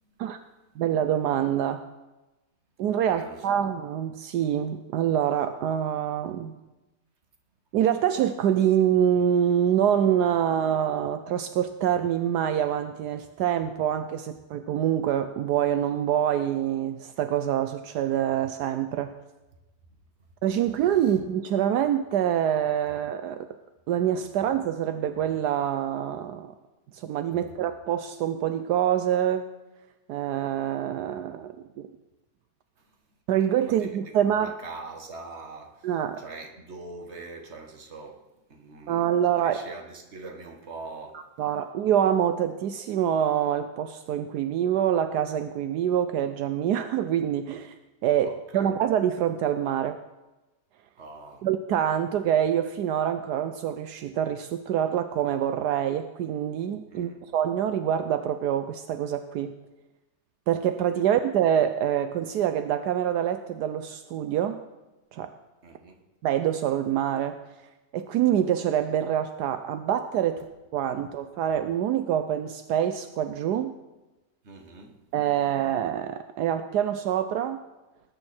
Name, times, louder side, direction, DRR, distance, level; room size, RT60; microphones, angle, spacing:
voice 1, 0.8-1.8 2.8-6.5 7.7-19.1 20.4-23.5 23.9-26.5 26.9-29.5 30.1-31.9 33.3-34.5 35.8-36.2 38.9-39.6 41.4-47.7 48.0-50.0 51.4-59.5 60.5-64.6 65.1-65.3 66.2-67.4 67.9-70.5 70.7-73.7 75.1-77.6, right 10 dB, 80° right, 1.2 m, -25 dB
voice 2, 3.0-3.7 20.2-20.3 20.9-21.2 32.8-33.0 33.7-41.3 48.2-48.7 51.0-51.5 56.9-57.3 61.0-61.1 65.6-66.0 74.4-75.0, right 3 dB, 45° right, 1.7 m, -44 dB
19.5 x 9.8 x 4.3 m
omnidirectional pair, 1.7 m